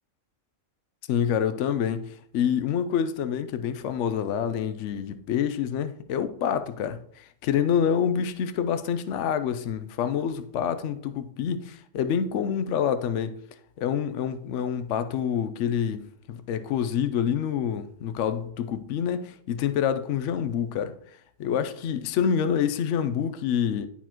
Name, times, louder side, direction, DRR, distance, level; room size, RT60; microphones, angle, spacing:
voice 1, 1.1-13.4 13.8-16.0 16.3-20.9 21.4-23.9, left 8 dB, 70° left, 0.9 m, -27 dB
11.0 x 4.2 x 2.9 m
omnidirectional pair, 1.3 m